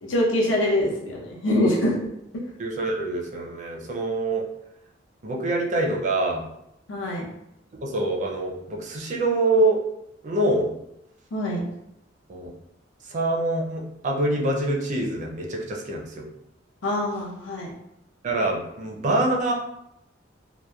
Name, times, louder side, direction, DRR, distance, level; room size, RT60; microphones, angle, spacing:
voice 1, 0.0-2.0 6.9-7.3 11.3-11.6 16.8-17.7, left 1 dB, 85° left, -2 dB, 0.7 m, -24 dB
voice 2, 2.6-4.5 5.2-6.4 7.7-9.8 10.2-10.7 12.3-12.5 13.0-16.3 18.2-19.5, right 2 dB, 40° right, -1 dB, 0.4 m, -25 dB
2.8 x 2.0 x 2.2 m, 0.83 s
head